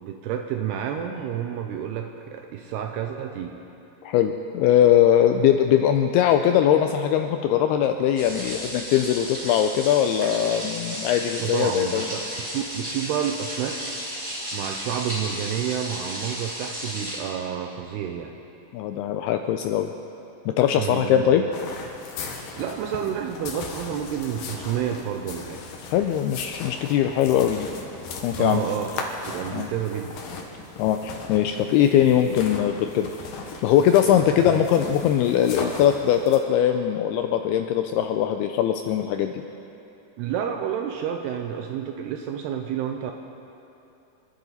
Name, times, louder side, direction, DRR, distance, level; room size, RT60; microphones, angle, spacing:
voice 1, 0.0-3.6 11.4-12.2 12.5-13.8 14.5-18.3 20.8-21.3 22.6-25.6 28.4-30.2 34.4-34.6 40.2-43.1, right 9 dB, 80° right, 4 dB, 2.5 m, -30 dB
voice 2, 4.0-12.1 18.7-19.9 20.6-21.4 25.9-27.7 28.2-28.6 29.5-29.7 30.8-33.1 33.6-39.3, left 10 dB, 90° left, 6 dB, 2.2 m, -21 dB
sound 1, 8.2-17.2, equal, 25° right, 2.5 m, -34 dB
sound 2, 21.5-36.4, left 4 dB, 65° left, 2.7 m, -37 dB
27.5 x 12.0 x 4.1 m, 2.9 s
omnidirectional pair, 5.2 m